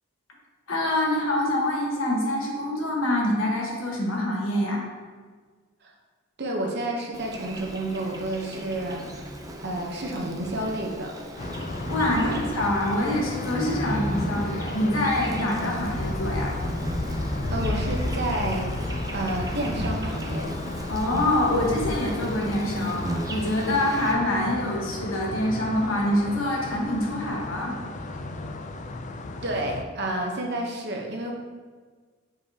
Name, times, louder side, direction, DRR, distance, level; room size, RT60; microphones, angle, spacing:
voice 1, 0.7-4.8 11.9-16.5 20.9-27.7, left 1 dB, 75° left, -2 dB, 1.3 m, -25 dB
voice 2, 6.4-9.3 9.6-11.2 12.2-12.4 17.5-18.8 19.1-20.5 29.4-31.3, right 1 dB, 55° right, 0 dB, 0.9 m, -30 dB
Insect, 7.1-24.1, right 1 dB, 15° right, 0.5 m, -35 dB
sound 1, 11.4-29.8, left 2 dB, 35° left, 0.4 m, -33 dB
6.6 x 5.1 x 2.8 m, 1.5 s
head